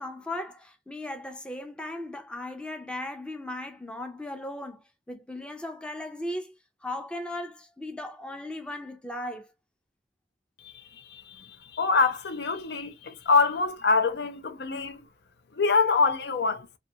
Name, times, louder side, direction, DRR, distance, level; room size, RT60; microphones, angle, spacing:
voice 1, 0.0-6.5 6.8-9.5, left 1 dB, 5° left, 0.5 m, -37 dB
voice 2, 10.6-15.0 15.6-16.7, left 4 dB, 65° left, 0.5 m, -25 dB
3.0 x 2.3 x 2.7 m
head